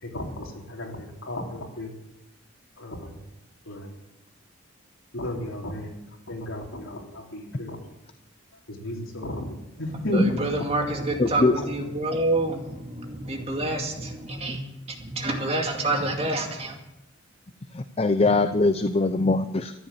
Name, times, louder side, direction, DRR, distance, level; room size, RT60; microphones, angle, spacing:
voice 1, 0.0-1.9 2.8-3.2 3.7-3.9 5.1-6.0 6.3-7.8 8.7-10.4, left 1 dB, 80° left, 0 dB, 3.6 m, -32 dB
voice 2, 10.1-14.6 15.0-16.8, right 2 dB, 30° right, 2 dB, 2.3 m, -27 dB
voice 3, 11.2-11.5 17.7-19.7, left 3 dB, 30° left, 9 dB, 0.6 m, -22 dB
14.0 x 11.0 x 7.7 m, 0.89 s
head